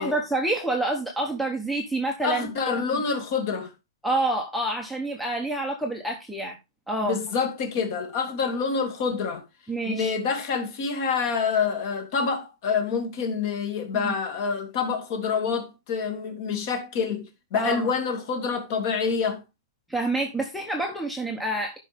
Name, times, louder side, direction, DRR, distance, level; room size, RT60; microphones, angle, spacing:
voice 1, 0.0-3.0 4.0-6.6 6.9-7.2 9.7-10.1 14.0-14.1 17.5-17.9 19.9-21.8, right 2 dB, ahead, 1.0 m, -28 dB
voice 2, 2.2-3.7 7.0-9.4 9.9-19.4, left 5 dB, 40° left, 2.4 m, -27 dB
12.5 x 5.4 x 3.4 m
hypercardioid pair, 165°, 3 cm